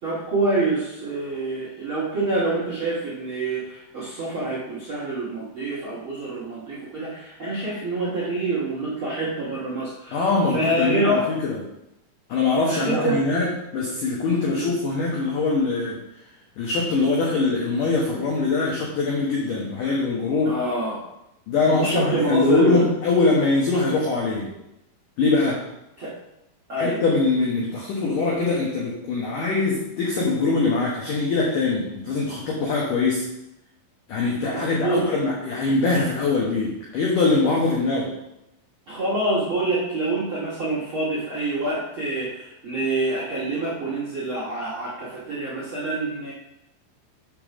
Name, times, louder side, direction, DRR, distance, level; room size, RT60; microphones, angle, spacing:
voice 1, 0.0-11.3 12.6-13.2 14.5-14.7 20.4-21.0 21.7-22.9 26.0-26.1 26.7-27.0 34.5-35.1 38.9-46.3, right 2 dB, 55° right, -7 dB, 1.4 m, -26 dB
voice 2, 10.1-11.6 12.3-16.0 16.6-20.5 21.5-24.5 25.2-25.6 26.8-33.3 34.1-38.1, left 3 dB, 75° left, -3 dB, 1.9 m, -22 dB
7.2 x 5.2 x 6.1 m, 0.87 s
omnidirectional pair, 5.7 m